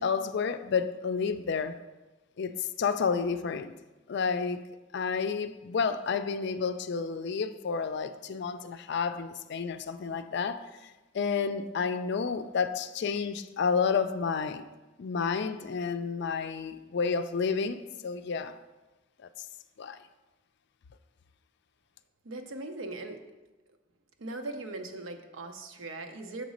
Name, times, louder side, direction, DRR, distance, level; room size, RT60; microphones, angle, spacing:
voice 1, 0.0-1.8 2.4-3.7 4.1-4.6 4.9-14.6 15.0-18.6 19.2-19.3 19.8-20.0, left 5 dB, 60° left, 0.4 m, -30 dB
voice 2, 22.2-23.2 24.2-26.4, right 2 dB, 85° right, 0.7 m, -39 dB
6.6 x 4.0 x 6.3 m
head